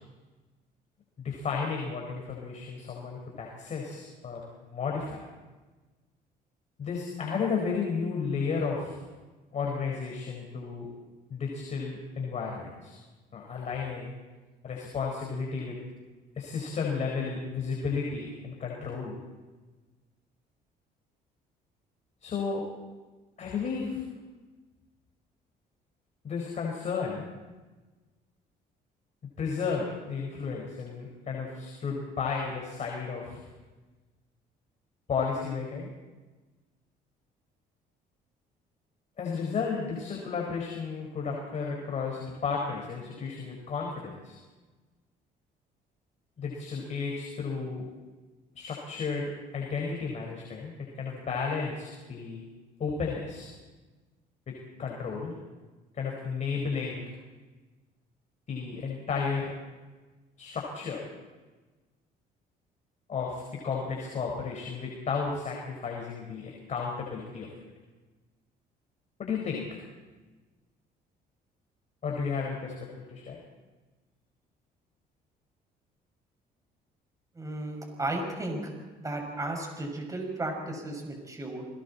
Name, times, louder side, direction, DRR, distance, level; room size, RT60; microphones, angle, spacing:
voice 1, 1.2-5.2 6.8-9.0 9.5-10.9 11.3-13.0 13.3-14.1 14.6-15.8 16.3-19.2 22.2-22.6 23.4-24.0 26.2-27.3 29.4-33.5 35.1-35.9 39.2-44.4 46.4-47.9 48.5-52.4 52.8-53.5 54.5-55.3 55.9-57.0 58.5-59.5 60.4-61.0 63.1-67.5 69.2-69.8 72.0-73.4, left 5 dB, 45° left, -1 dB, 5.0 m, -33 dB
voice 2, 77.3-78.6 79.0-81.7, right 2 dB, 20° right, 2 dB, 6.3 m, -34 dB
30.0 x 21.0 x 4.3 m, 1.3 s
cardioid pair, 110°, 17 cm